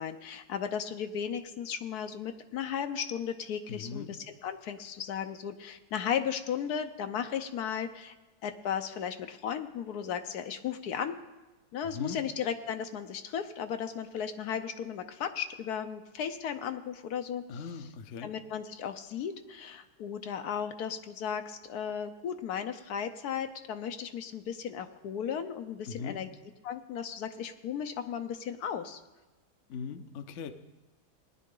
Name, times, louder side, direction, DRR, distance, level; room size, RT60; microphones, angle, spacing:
voice 1, 0.0-8.1 8.4-11.2 11.7-17.6 18.2-26.3 26.6-29.0, left 8 dB, 75° left, 8 dB, 1.2 m, -35 dB
voice 2, 3.7-4.1 11.9-12.2 17.5-18.3 25.9-26.2 29.7-30.5, left 6 dB, 60° left, 9 dB, 0.9 m, -39 dB
18.5 x 10.0 x 3.8 m, 1.1 s
omnidirectional pair, 1.7 m